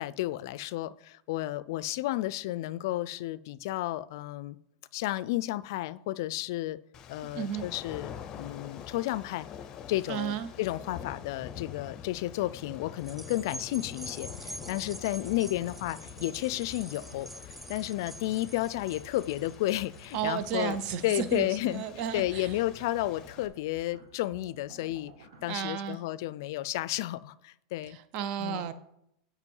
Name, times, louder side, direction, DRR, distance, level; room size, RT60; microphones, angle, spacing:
voice 1, 0.0-4.6 4.9-6.8 7.1-9.5 9.9-17.3 17.7-28.0 28.4-28.7, left 16 dB, 65° left, 0.4 m, -32 dB
sound 1, 6.9-23.5, left 8 dB, 30° left, 0.7 m, -46 dB
voice 2, 7.3-7.7 10.1-10.5 20.1-22.6 25.5-26.0 27.9-28.7, right 8 dB, 50° right, 0.7 m, -33 dB
sound 2, 13.0-21.7 22.2-22.3, right 2 dB, 5° right, 0.4 m, -47 dB
sound 3, 13.3-25.4, right 5 dB, 85° right, 1.7 m, -54 dB
8.1 x 5.1 x 5.4 m
supercardioid pair, 145°, 2 cm